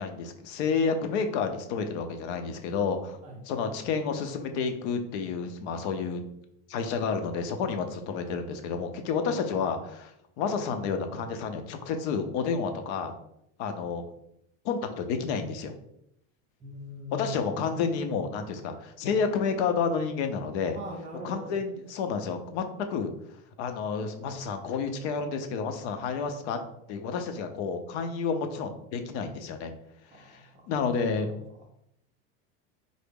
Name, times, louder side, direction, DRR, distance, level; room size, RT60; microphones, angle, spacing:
voice 1, 0.0-3.2 3.5-6.2 6.7-10.1 10.4-13.1 13.6-14.0 14.6-15.7 17.1-20.8 21.2-22.6 22.9-23.1 23.6-26.6 26.9-29.7 30.2-31.3, left 5 dB, 70° left, 7 dB, 0.6 m, -30 dB
voice 2, 16.6-17.3 20.7-21.5 30.1-30.7 31.6-31.7, left 2 dB, 20° right, -1 dB, 0.4 m, -41 dB
3.7 x 2.0 x 3.6 m, 0.76 s
supercardioid pair, 155°, 35 cm